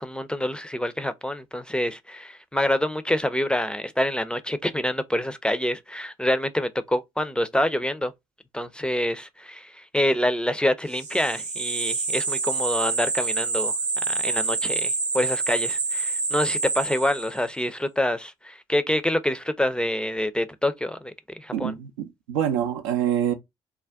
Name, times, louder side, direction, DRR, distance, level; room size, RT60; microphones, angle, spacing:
voice 1, 0.0-8.1 8.5-13.7 14.1-21.7, left 1 dB, 5° left, 0.4 m, -26 dB
sound 1, 10.9-17.5, right 4 dB, 50° right, 0.8 m, -27 dB
voice 2, 21.5-21.9 22.3-23.3, right 10 dB, 85° right, 0.4 m, -25 dB
2.4 x 2.2 x 3.4 m
hypercardioid pair, 50°, 15 cm